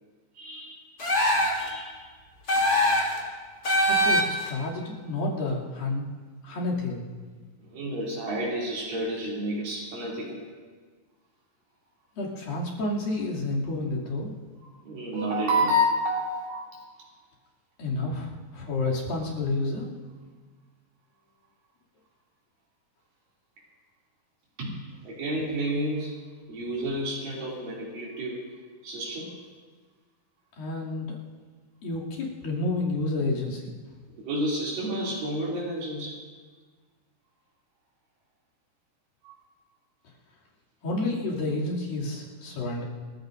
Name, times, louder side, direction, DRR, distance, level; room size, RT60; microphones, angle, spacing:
voice 1, 0.3-0.8 1.5-2.0 7.6-10.4 14.8-16.8 24.6-24.8 25.0-26.1 26.5-28.4 28.8-29.3 34.2-36.2 39.2-39.3, equal, 75° right, -6 dB, 4.6 m, -30 dB
sound 1, 1.0-1.7 2.5-3.2 3.6-4.5, equal, 25° left, 3.1 m, -22 dB
voice 2, 3.9-6.0 6.4-7.1 12.2-14.3 17.8-19.9 30.6-31.2 31.8-33.7 40.8-42.8, left 2 dB, 85° left, -5 dB, 4.6 m, -30 dB
27.0 x 15.0 x 2.6 m, 1.5 s
omnidirectional pair, 4.0 m